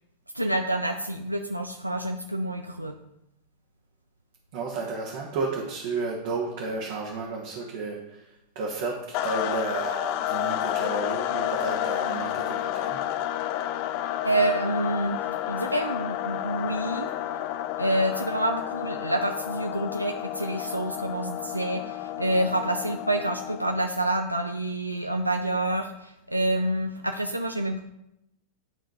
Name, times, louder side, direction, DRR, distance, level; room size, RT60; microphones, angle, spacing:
voice 1, 0.3-2.9 14.2-15.2 15.5-17.1 17.8-27.8, right 1 dB, 85° right, 5 dB, 0.4 m, -27 dB
voice 2, 4.5-13.0, right 3 dB, 50° right, -2 dB, 1.4 m, -32 dB
sound 1, 9.1-23.9, left 12 dB, 45° left, 0.4 m, -31 dB
11.0 x 3.8 x 4.9 m, 0.84 s
figure-of-eight pair, 90°, 0 cm